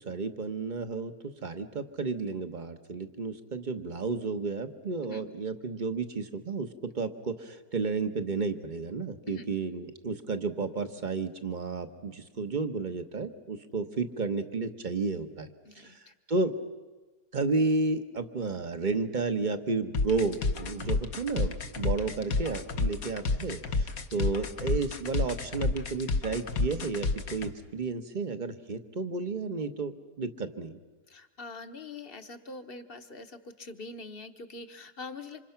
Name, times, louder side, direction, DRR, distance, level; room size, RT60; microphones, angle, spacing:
voice 1, 0.1-1.1 1.4-15.5 15.7-16.0 16.3-16.5 17.3-30.8, right 4 dB, 35° right, 9 dB, 1.0 m, -32 dB
voice 2, 15.6-16.1 31.1-35.5, left 3 dB, 40° left, 8 dB, 1.2 m, -44 dB
sound 1, 19.9-27.5, left 3 dB, 60° left, 1.5 m, -30 dB
27.5 x 26.0 x 5.8 m, 1.2 s
omnidirectional pair, 1.7 m